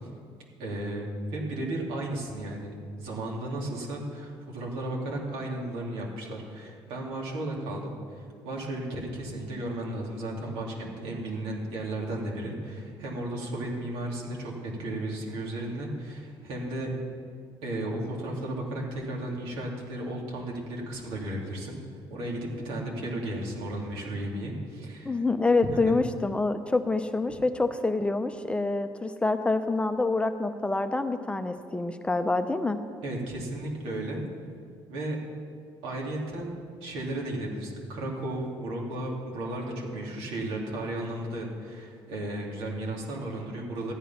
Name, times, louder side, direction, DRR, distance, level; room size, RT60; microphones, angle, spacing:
voice 1, 0.6-17.0 17.6-21.8 22.1-25.2 25.7-25.9 27.3-27.4 33.0-34.2 34.9-35.2 35.8-43.9, right 1 dB, 85° right, -2 dB, 2.8 m, -34 dB
voice 2, 25.0-32.8, left 3 dB, 10° left, 8 dB, 0.6 m, -26 dB
13.5 x 9.3 x 5.7 m, 2.1 s
cardioid pair, 105°, 9 cm